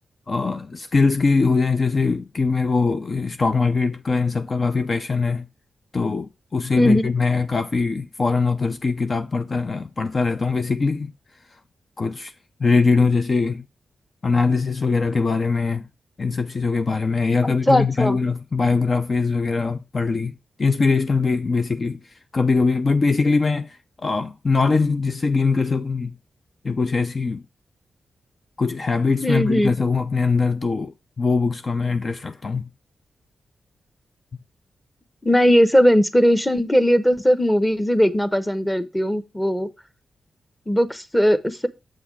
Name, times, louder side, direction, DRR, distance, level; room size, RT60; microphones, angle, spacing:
voice 1, 0.3-5.5 5.9-11.1 12.0-12.3 12.6-13.6 14.2-15.9 16.2-20.3 20.6-22.0 22.3-26.2 26.6-27.4 28.6-32.7, left 4 dB, 45° left, 0.5 m, -22 dB
voice 2, 6.7-7.1 17.7-18.2 29.2-29.8 35.2-39.7 40.7-41.7, equal, 10° left, 0.9 m, -18 dB
7.5 x 3.4 x 6.2 m
cardioid pair, 70°, 0 cm